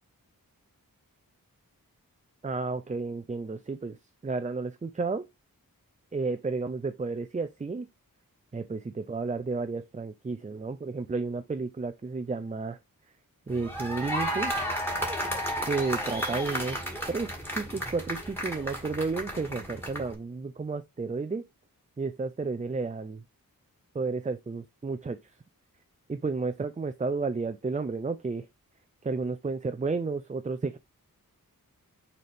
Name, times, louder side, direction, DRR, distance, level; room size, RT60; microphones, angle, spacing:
voice 1, 2.4-4.0 4.2-5.3 6.1-7.9 8.5-12.8 13.5-14.5 15.6-16.8 17.1-21.4 22.0-23.2 23.9-25.2 26.1-28.5 29.0-30.8, right 4 dB, 20° right, 0.4 m, -32 dB
sound 1, 13.5-20.1, equal, 5° left, 2.3 m, -33 dB
6.5 x 4.2 x 3.5 m
wide cardioid pair, 80°, 35 cm